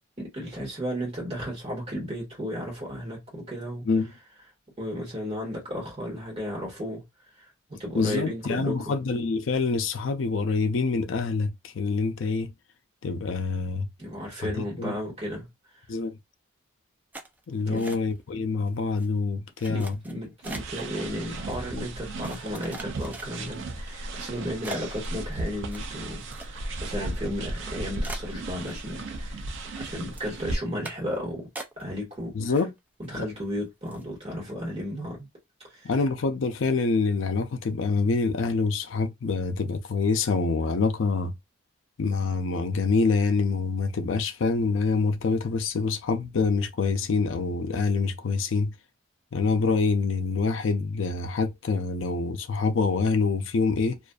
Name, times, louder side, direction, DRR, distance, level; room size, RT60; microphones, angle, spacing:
voice 1, 0.2-3.9 4.8-7.1 7.4-8.9 14.0-15.5 17.7-17.9 19.7-29.5 29.8-31.5 31.8-32.4 33.1-35.3 35.7-35.9, equal, 30° right, 1.3 m, -34 dB
voice 2, 7.9-12.5 13.0-13.9 14.4-14.9 15.9-16.2 17.5-20.0 32.3-32.7 33.1-33.3 35.8-41.3 42.0-48.7 49.3-54.0, left 4 dB, 70° left, 0.4 m, -26 dB
sound 1, 17.1-18.4 18.7-19.1 19.6-20.9 21.5-21.6 22.2-23.6 24.1-24.3 24.6-26.8 27.1-27.2 27.6-27.7 28.0-29.1 29.4-29.8 30.1-30.3 30.8-31.2 31.6-32.1 32.4-33.1 33.4-33.5 33.9-34.1, right 2 dB, 10° right, 0.3 m, -42 dB
sound 2, 20.4-30.6, right 2 dB, 70° right, 0.5 m, -35 dB
2.4 x 2.4 x 2.2 m
head